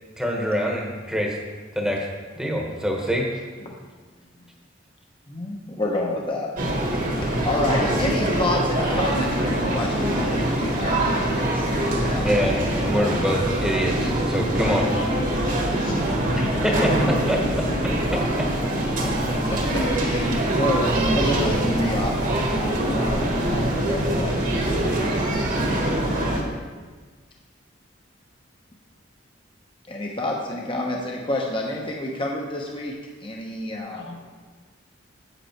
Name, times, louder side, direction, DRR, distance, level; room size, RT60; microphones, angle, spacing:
voice 1, 0.2-1.3 1.7-2.1 2.4-3.2 12.2-14.8 16.3-16.9 17.3-17.4, equal, 5° right, -1 dB, 1.1 m, -25 dB
voice 2, 5.3-11.7 12.0-12.3 19.0-24.7 29.9-32.9 33.2-34.2, left 1 dB, 25° left, -1 dB, 0.8 m, -29 dB
sound 1, 6.6-26.4, right 1 dB, 45° right, 1.5 m, -23 dB
voice 3, 14.5-16.0 33.9-34.3, left 2 dB, 80° left, 1 dB, 1.4 m, -38 dB
8.0 x 7.6 x 4.5 m, 1.4 s
head